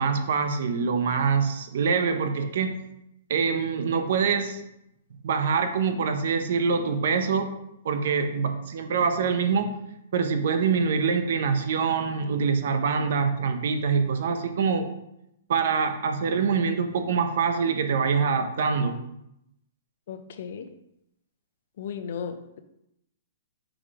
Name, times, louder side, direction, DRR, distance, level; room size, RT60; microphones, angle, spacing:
voice 1, 0.0-2.7 3.3-4.6 5.2-7.5 7.8-9.7 10.1-14.9 15.5-19.0, right 5 dB, 55° right, 7 dB, 0.7 m, -25 dB
voice 2, 20.1-20.7 21.8-22.6, left 7 dB, 50° left, 8 dB, 0.5 m, -35 dB
6.2 x 3.3 x 4.7 m, 0.82 s
hypercardioid pair, 175°, 0 cm